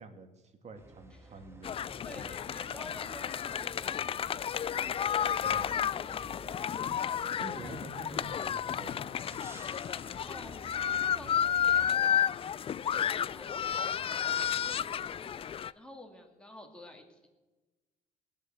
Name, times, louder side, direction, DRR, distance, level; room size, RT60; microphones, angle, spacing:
voice 1, 0.0-2.5 5.4-5.8 7.4-9.6, right 3 dB, 40° right, 6 dB, 2.2 m, -48 dB
sound 1, 0.7-11.9, right 2 dB, 15° right, 1.7 m, -53 dB
sound 2, 1.6-15.7, left 9 dB, 35° left, 0.4 m, -32 dB
voice 2, 2.0-4.0 7.3-7.7 8.1-8.4 10.3-12.4 12.8-17.3, left 1 dB, 5° left, 2 dB, 2.6 m, -51 dB
20.5 x 7.3 x 7.9 m, 1.2 s
cardioid pair, 110°, 17 cm